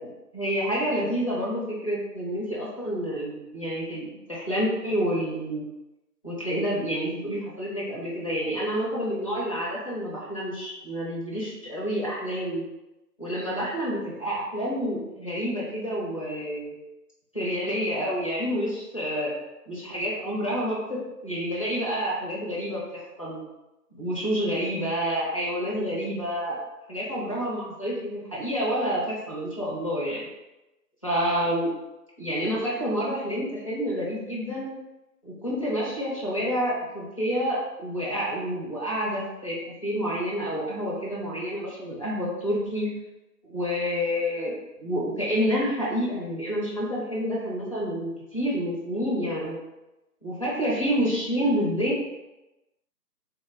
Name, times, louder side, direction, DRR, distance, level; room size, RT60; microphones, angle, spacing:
voice 1, 0.0-5.7 6.2-12.6 13.2-16.7 17.3-19.3 19.7-23.4 23.9-26.5 26.9-30.3 31.0-31.7 32.2-34.7 35.2-42.9 43.4-49.6 50.2-51.9, equal, 20° left, -7 dB, 0.6 m, -28 dB
4.1 x 2.1 x 3.8 m, 0.99 s
figure-of-eight pair, 155°, 49 cm